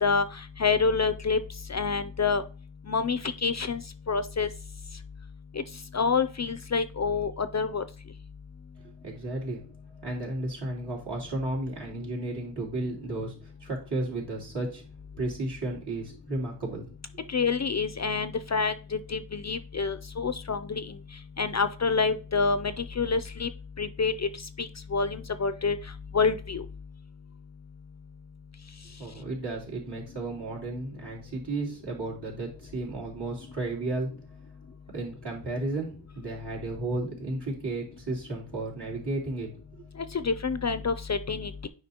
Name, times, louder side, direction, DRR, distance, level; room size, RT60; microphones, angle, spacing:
voice 1, 0.0-1.4 1.7-2.4 2.9-3.8 4.1-4.5 5.6-5.7 5.9-7.8 17.3-18.7 19.1-20.9 21.4-23.5 23.8-24.3 24.6-25.8 26.1-26.6 40.1-41.7, left 5 dB, 40° left, 12 dB, 0.4 m, -27 dB
voice 2, 9.0-9.6 10.0-14.8 15.2-16.9 29.0-34.1 34.9-39.9, right 2 dB, 65° right, -3 dB, 3.1 m, -33 dB
9.4 x 5.0 x 2.8 m, 0.38 s
wide cardioid pair, 110°, 44 cm